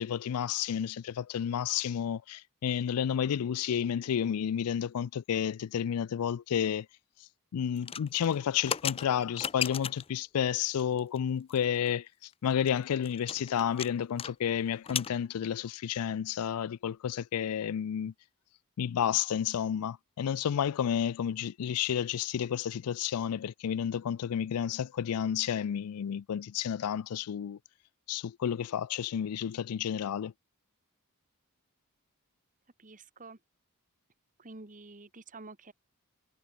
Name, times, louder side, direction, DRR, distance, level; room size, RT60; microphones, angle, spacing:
voice 1, 0.0-6.9 7.5-12.1 12.4-18.1 18.8-27.6 28.1-30.3, left 8 dB, 80° left, 0.4 m, -31 dB
sound 1, 7.8-10.2 10.8-11.2 11.5-11.6 11.9-12.0 12.3-14.3 14.6-15.2, left 8 dB, 25° left, 0.5 m, -36 dB
voice 2, 32.8-33.4 34.4-35.7, right 3 dB, 35° right, 1.8 m, -49 dB
head